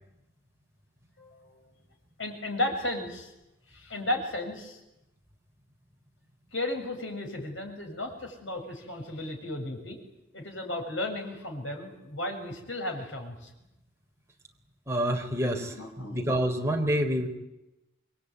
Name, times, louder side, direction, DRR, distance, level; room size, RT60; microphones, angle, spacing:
voice 1, 1.2-1.7 2.2-3.3 3.7-4.8 6.5-10.0 10.3-13.5 15.6-16.2, left 1 dB, 75° left, 3 dB, 7.6 m, -34 dB
voice 2, 14.9-15.7 16.1-17.3, equal, 15° right, 2 dB, 3.9 m, -27 dB
27.0 x 22.5 x 9.6 m, 0.91 s
head